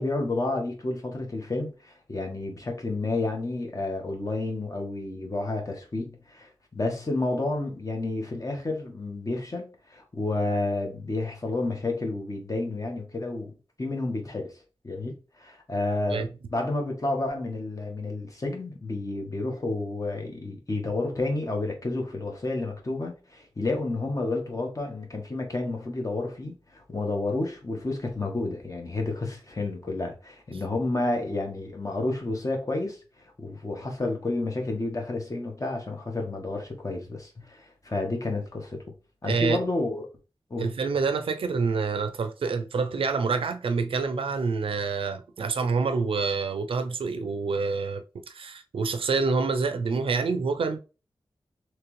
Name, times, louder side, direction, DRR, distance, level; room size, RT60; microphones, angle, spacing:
voice 1, 0.0-13.5 13.8-14.5 14.8-38.8 39.2-40.1 40.5-40.7, left 2 dB, 40° left, 1.2 m, -30 dB
voice 2, 39.2-39.6 40.6-50.8, right 4 dB, 80° right, 0.4 m, -27 dB
3.3 x 3.1 x 3.1 m
cardioid pair, 50°, 9 cm